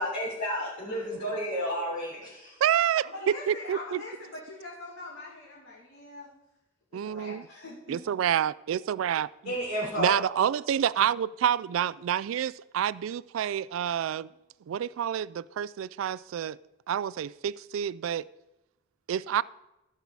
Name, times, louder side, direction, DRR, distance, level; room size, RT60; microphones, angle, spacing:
voice 1, 0.0-2.6 9.4-10.2, equal, 45° left, 3.5 m, -31 dB
voice 2, 0.9-1.4 3.0-6.3 6.9-8.0, left 2 dB, 70° left, 2.4 m, -43 dB
voice 3, 2.6-3.1 3.5-4.0 6.9-7.4 7.9-9.5 10.0-14.3 14.7-16.6 16.9-18.2 19.1-19.4, right 9 dB, 80° right, 0.3 m, -28 dB
15.5 x 5.4 x 4.7 m
head